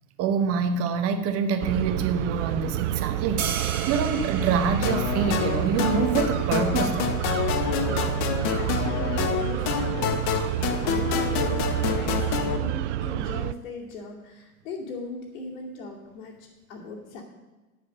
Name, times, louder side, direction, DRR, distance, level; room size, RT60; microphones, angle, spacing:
voice 1, 0.2-7.2, right 5 dB, 30° right, 8 dB, 1.2 m, -26 dB
sound 1, 1.6-13.5, right 15 dB, 55° right, 0.5 m, -29 dB
sound 2, 3.4-9.5, right 7 dB, 70° right, 1.5 m, -38 dB
sound 3, 4.8-12.6, left 8 dB, 35° left, 1.1 m, -28 dB
voice 2, 7.5-10.1 10.7-16.4 16.7-17.2, left 3 dB, 60° left, -6 dB, 2.6 m, -38 dB
9.7 x 7.5 x 6.5 m, 1.2 s
hypercardioid pair, 105°, 44 cm